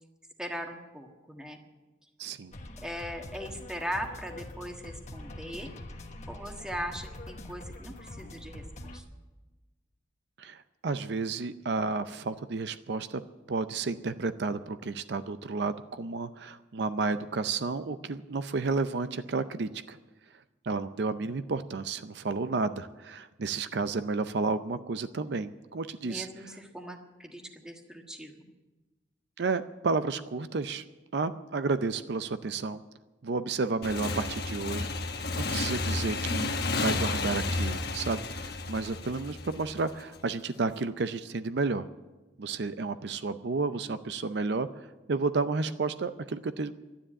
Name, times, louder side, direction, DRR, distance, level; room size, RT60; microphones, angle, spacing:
voice 1, 0.4-1.6 2.8-5.7 6.3-9.0 26.0-28.5, equal, 5° right, 3 dB, 1.5 m, -39 dB
voice 2, 2.2-2.5 10.4-13.2 13.5-20.0 20.6-26.3 29.4-30.8 31.1-32.8 33.2-34.9 35.4-41.9 42.4-46.7, right 4 dB, 65° right, 11 dB, 0.5 m, -31 dB
sound 1, 2.5-9.0, left 1 dB, 40° left, 1.3 m, -44 dB
Motorcycle / Engine, 33.8-40.2, left 3 dB, 60° left, 1.2 m, -32 dB
12.5 x 10.0 x 9.9 m, 1.2 s
head